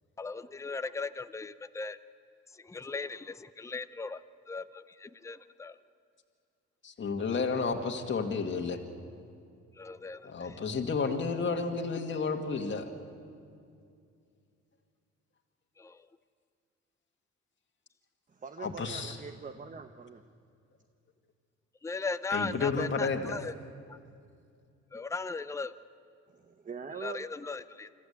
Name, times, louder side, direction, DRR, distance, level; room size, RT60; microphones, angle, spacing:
voice 1, 0.2-2.0 2.5-4.2 4.5-5.8 9.7-10.6 15.8-16.1 21.8-23.5 23.9-24.0 24.9-25.7 27.0-27.9, left 4 dB, 10° left, 12 dB, 0.6 m, -38 dB
voice 2, 6.8-8.8 10.2-12.9 18.6-19.2 22.3-23.4, left 4 dB, 40° left, 3 dB, 1.9 m, -31 dB
voice 3, 18.3-20.2 26.3-27.2, right 5 dB, 25° right, 8 dB, 0.9 m, -43 dB
25.5 x 14.0 x 8.2 m, 2.4 s
cardioid pair, 90°, 30 cm